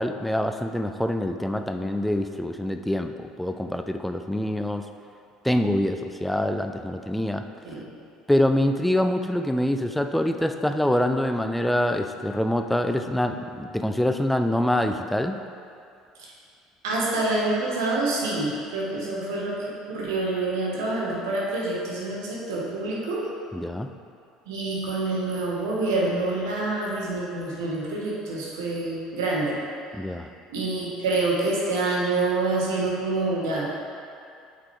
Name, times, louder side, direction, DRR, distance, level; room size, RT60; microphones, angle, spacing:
voice 1, 0.0-4.8 5.4-7.4 8.3-15.4 23.5-23.9 29.9-30.3, left 1 dB, 5° left, 7 dB, 0.5 m, -25 dB
voice 2, 16.8-23.2 24.5-29.6 30.5-33.7, right 2 dB, 70° right, -4 dB, 1.4 m, -27 dB
8.0 x 5.8 x 3.3 m, 2.4 s
figure-of-eight pair, 60°, 2 cm